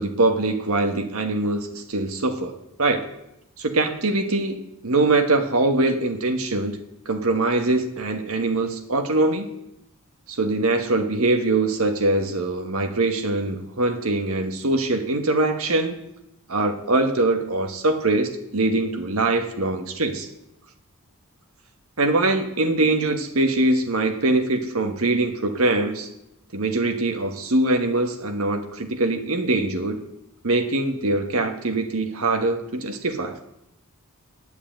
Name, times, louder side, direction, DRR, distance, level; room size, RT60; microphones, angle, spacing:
voice 1, 0.0-2.5 2.8-3.0 3.6-6.8 7.0-9.5 10.3-16.1 16.5-20.3 22.0-26.1 26.5-30.0 30.4-33.4, right 2 dB, 75° right, 6 dB, 1.3 m, -23 dB
9.9 x 7.9 x 8.8 m, 0.85 s
head